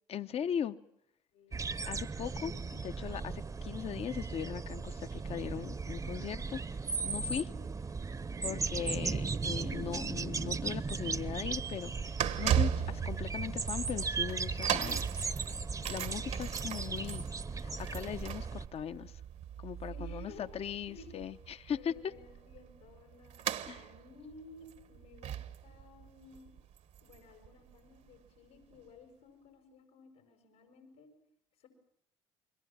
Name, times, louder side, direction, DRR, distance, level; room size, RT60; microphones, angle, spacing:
voice 1, 0.1-0.8 1.9-6.6 7.0-7.5 8.4-15.1 15.9-17.3 17.6-19.2 19.6-22.1 23.7-23.8, left 9 dB, 50° left, 11 dB, 0.9 m, -39 dB
voice 2, 1.3-1.7 7.3-7.6 19.9-20.5 20.9-21.2 21.8-23.4 23.7-26.5 27.0-31.1 31.6-31.7, left 3 dB, 90° left, 3 dB, 6.0 m, -55 dB
sound 1, 1.5-18.7, right 4 dB, 25° right, 0.9 m, -37 dB
sound 2, 11.1-27.5 27.7-28.0 28.8-28.9, right 10 dB, 60° right, 1.3 m, -38 dB
29.5 x 22.0 x 7.4 m, 0.75 s
hypercardioid pair, 70°, 13 cm